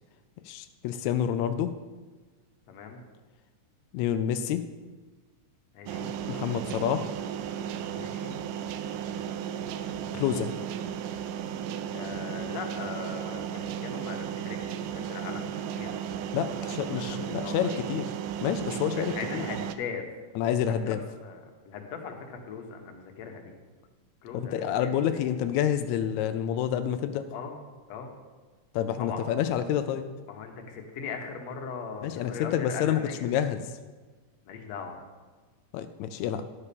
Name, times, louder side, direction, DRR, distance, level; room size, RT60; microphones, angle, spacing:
voice 1, 0.4-1.7 3.9-4.6 6.3-7.1 10.1-10.5 16.3-18.1 18.4-19.5 20.3-21.0 24.5-27.3 28.7-30.1 32.0-33.7 35.7-36.4, left 9 dB, 85° left, 9 dB, 1.6 m, -28 dB
voice 2, 2.7-3.0 5.7-6.1 7.9-8.4 11.9-17.8 18.8-20.0 20.7-21.0 21.2-23.5 24.2-25.3 27.3-27.6 27.9-28.1 29.0-29.2 30.3-33.3 34.5-35.0, left 6 dB, 65° left, 3 dB, 2.1 m, -40 dB
sound 1, 5.9-19.8, right 9 dB, 80° right, 2.1 m, -35 dB
11.0 x 5.5 x 6.8 m, 1.4 s
omnidirectional pair, 3.7 m